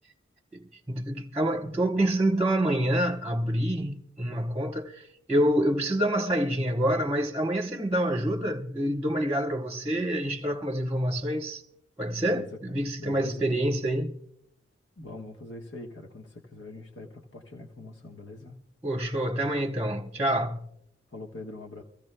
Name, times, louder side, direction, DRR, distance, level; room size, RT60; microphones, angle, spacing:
voice 1, 0.5-11.6 12.0-14.2 18.8-20.7, right 1 dB, 10° right, 0.9 m, -27 dB
voice 2, 12.2-13.5 15.0-18.6 21.1-21.8, left 2 dB, 90° left, 1.2 m, -43 dB
24.5 x 15.5 x 2.2 m
head